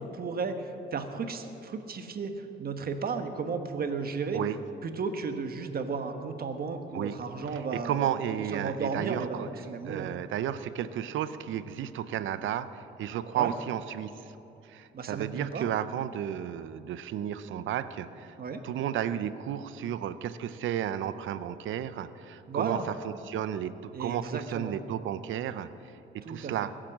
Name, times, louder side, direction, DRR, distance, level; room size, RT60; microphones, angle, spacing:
voice 1, 0.0-4.4 4.8-8.1 8.3-10.1 13.3-13.5 14.9-15.7 18.4-18.6 22.5-22.9 23.9-24.8 26.2-26.7, right 5 dB, 50° right, 7 dB, 1.3 m, -34 dB
voice 2, 7.5-9.5 9.8-14.2 14.7-18.3 18.6-22.8 23.0-25.7 26.1-26.7, right 10 dB, 75° right, 13 dB, 0.6 m, -33 dB
21.0 x 7.6 x 7.4 m, 2.9 s
cardioid pair, 90°, 20 cm